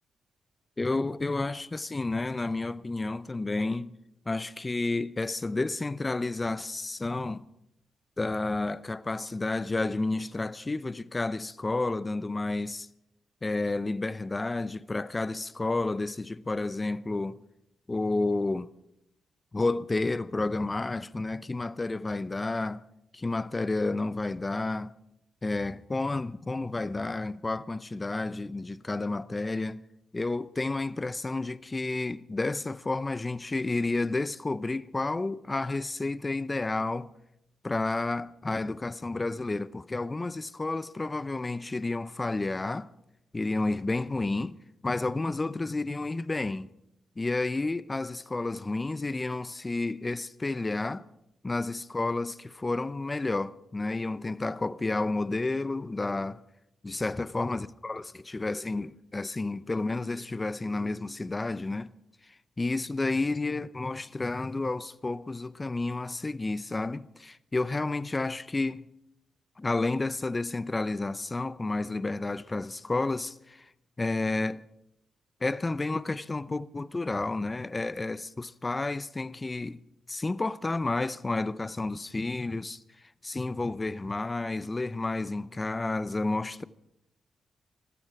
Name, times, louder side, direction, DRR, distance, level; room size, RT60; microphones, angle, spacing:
voice 1, 0.8-4.0 4.3-7.4 8.2-12.9 13.4-17.4 17.9-18.7 19.5-22.8 23.1-24.9 25.4-29.8 30.1-37.1 37.6-42.9 43.3-44.6 44.8-46.7 47.2-51.1 51.4-56.4 56.8-61.9 62.6-68.9 69.6-73.6 74.0-74.6 75.4-79.8 80.1-82.8 83.2-86.7, left 2 dB, 25° left, 0.6 m, -31 dB
20.0 x 14.5 x 4.8 m
cardioid pair, 65°, 0 cm